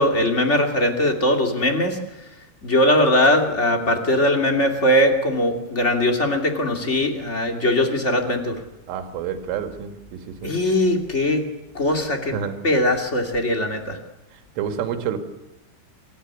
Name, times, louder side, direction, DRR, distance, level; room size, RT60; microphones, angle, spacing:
voice 1, 0.0-2.0 2.6-8.6 10.4-11.4 11.7-12.3 12.6-14.0, left 1 dB, 25° left, 3 dB, 1.6 m, -20 dB
voice 2, 8.9-10.5 12.3-12.6 14.3-15.2, right 8 dB, 85° right, 6 dB, 4.5 m, -29 dB
26.5 x 14.5 x 9.8 m, 0.96 s
omnidirectional pair, 5.6 m